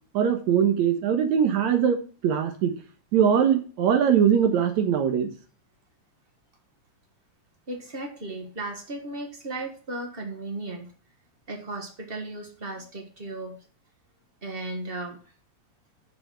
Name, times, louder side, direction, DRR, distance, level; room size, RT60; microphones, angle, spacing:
voice 1, 0.1-2.0 2.2-2.7 3.1-5.3, right 8 dB, 75° right, 7 dB, 2.4 m, -21 dB
voice 2, 7.7-10.9 11.5-13.6 14.4-15.2, right 2 dB, 35° right, 3 dB, 0.9 m, -35 dB
7.0 x 6.8 x 6.2 m, 0.39 s
omnidirectional pair, 3.4 m